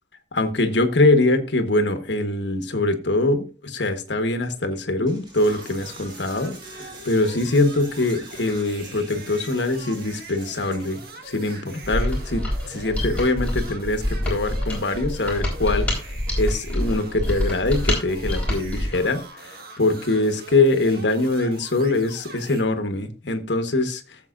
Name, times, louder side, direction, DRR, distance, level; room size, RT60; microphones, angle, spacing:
voice 1, 0.3-15.9 16.4-24.0, left 2 dB, 75° left, 1.3 m, -23 dB
Coin (dropping), 5.1-11.1, right 2 dB, 25° right, 2.5 m, -45 dB
sound 1, 5.4-22.6, right 2 dB, 55° right, 1.6 m, -43 dB
Mechanisms, 11.8-19.0, left 1 dB, 10° left, 3.9 m, -26 dB
15.5 x 7.6 x 2.5 m
head